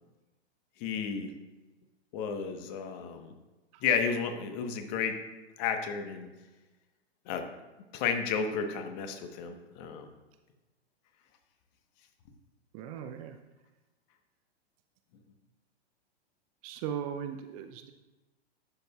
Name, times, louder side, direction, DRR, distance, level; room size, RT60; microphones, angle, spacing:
voice 1, 0.8-1.3 2.1-3.3 3.8-5.2 5.6-6.3 7.3-7.5 7.9-10.1, left 6 dB, 40° left, 6 dB, 1.2 m, -32 dB
voice 2, 12.7-13.4 16.6-17.9, right 8 dB, 35° right, 7 dB, 0.5 m, -38 dB
11.5 x 7.8 x 2.4 m, 1.1 s
figure-of-eight pair, 105°, 32 cm